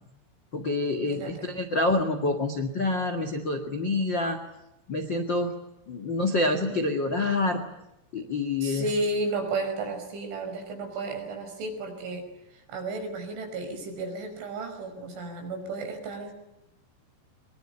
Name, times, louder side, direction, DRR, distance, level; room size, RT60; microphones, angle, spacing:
voice 1, 0.5-4.4 4.9-5.5 5.9-7.6 8.1-8.9, left 2 dB, 70° left, 7 dB, 1.0 m, -27 dB
voice 2, 1.1-1.5 6.7-6.8 8.6-12.3 12.5-16.3, right 2 dB, 70° right, 5 dB, 7.6 m, -33 dB
24.0 x 23.0 x 9.9 m, 0.87 s
omnidirectional pair, 5.8 m